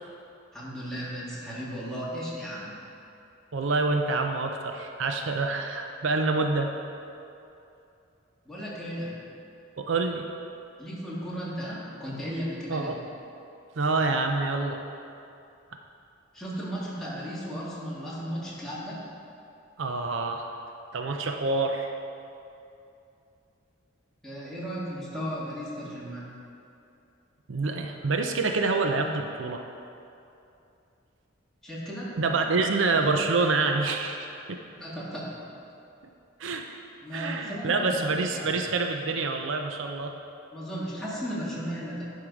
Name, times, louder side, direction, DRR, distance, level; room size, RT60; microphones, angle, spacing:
voice 1, 0.5-2.7 8.5-9.1 10.8-12.9 16.3-19.0 24.2-26.3 31.6-32.1 34.7-35.3 37.0-38.5 40.5-42.0, equal, 5° left, -8 dB, 2.0 m, -35 dB
voice 2, 3.5-6.7 9.8-10.2 12.7-13.0 13.8-14.8 19.8-20.5 20.9-21.9 27.5-29.6 32.2-34.6 36.4-36.6 37.1-40.1, right 3 dB, 70° right, 4 dB, 0.5 m, -27 dB
11.0 x 5.5 x 4.8 m, 2.7 s
head